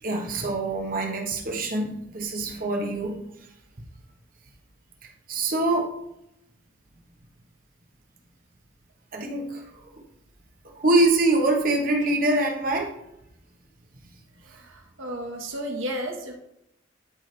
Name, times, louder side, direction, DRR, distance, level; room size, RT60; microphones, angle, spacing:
voice 1, 0.0-3.2 5.3-6.0 9.1-9.8 10.7-13.0, right 2 dB, 45° right, 2 dB, 1.2 m, -24 dB
voice 2, 14.4-16.3, equal, 85° right, 1 dB, 1.6 m, -33 dB
12.0 x 4.9 x 3.4 m, 0.81 s
head